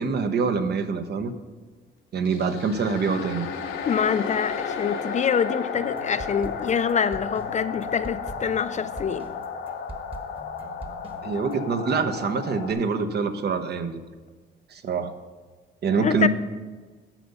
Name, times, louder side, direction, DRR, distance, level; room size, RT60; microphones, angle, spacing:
voice 1, 0.0-1.3 2.1-3.5 11.2-14.0 14.7-15.1 15.8-16.3, right 5 dB, 55° right, 8 dB, 0.9 m, -25 dB
sound 1, 2.2-12.7, left 6 dB, 80° left, 1.1 m, -33 dB
voice 2, 3.9-9.3 16.0-16.3, left 7 dB, 35° left, 12 dB, 0.4 m, -25 dB
sound 2, 5.7-11.6, right 1 dB, 25° right, 1.4 m, -42 dB
10.0 x 7.0 x 5.4 m, 1.4 s
cardioid pair, 90°, 20 cm